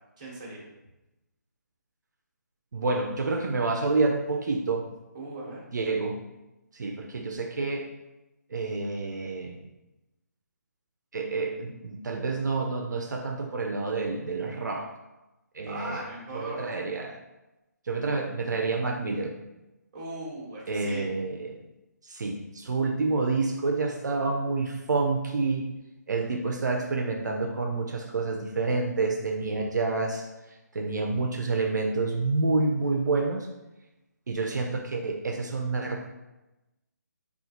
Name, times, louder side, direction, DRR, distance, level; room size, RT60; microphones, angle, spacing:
voice 1, 0.2-0.6 5.1-5.6 15.7-16.6 19.9-21.1, right 2 dB, 25° right, -5 dB, 1.0 m, -38 dB
voice 2, 2.7-4.8 5.7-6.2 6.7-7.9 8.5-9.6 11.1-14.9 15.5-16.0 16.3-17.2 17.9-19.3 20.7-21.6 22.0-25.7 26.1-30.2 30.7-33.5 34.3-36.0, right 3 dB, 75° right, 2 dB, 0.4 m, -28 dB
3.7 x 2.3 x 2.8 m, 1.0 s
hypercardioid pair, 165°, 10 cm